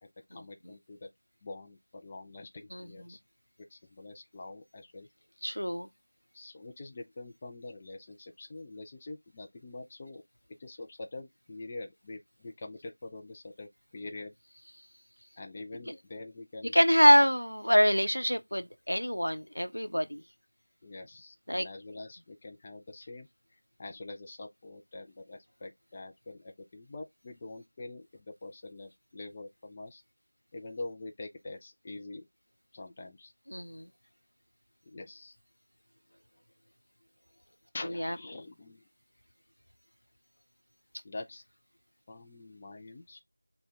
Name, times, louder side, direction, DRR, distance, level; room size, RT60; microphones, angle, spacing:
voice 1, 0.0-1.1 1.4-3.2 3.6-5.1 6.3-10.2 10.6-14.4 15.4-17.3 20.8-30.0 30.5-32.3 32.7-33.3 34.9-35.3 37.7-38.8 41.0-41.4 42.1-43.2, left 2 dB, 15° left, 0.3 m, -45 dB
voice 2, 2.7-3.2 5.4-5.9 15.9-16.0 16.7-20.2 21.5-21.7 33.5-33.9 38.0-38.1, equal, 85° left, 0.8 m, -25 dB
6.4 x 2.2 x 3.6 m
figure-of-eight pair, 175°, 0 cm